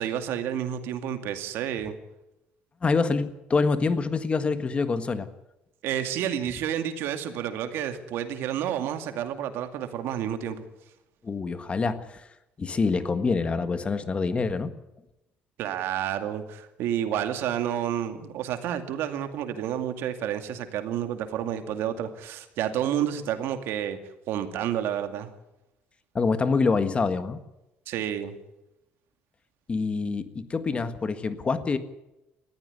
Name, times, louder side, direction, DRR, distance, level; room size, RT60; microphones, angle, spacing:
voice 1, 0.0-2.0 5.8-10.6 15.6-24.0 24.3-25.3 27.9-28.3, right 10 dB, 75° right, 8 dB, 2.3 m, -30 dB
voice 2, 2.8-5.3 11.2-12.1 12.6-14.7 26.1-27.4 29.7-31.8, left 4 dB, 30° left, 11 dB, 1.6 m, -26 dB
20.0 x 15.0 x 9.5 m, 0.92 s
cardioid pair, 110°, 4 cm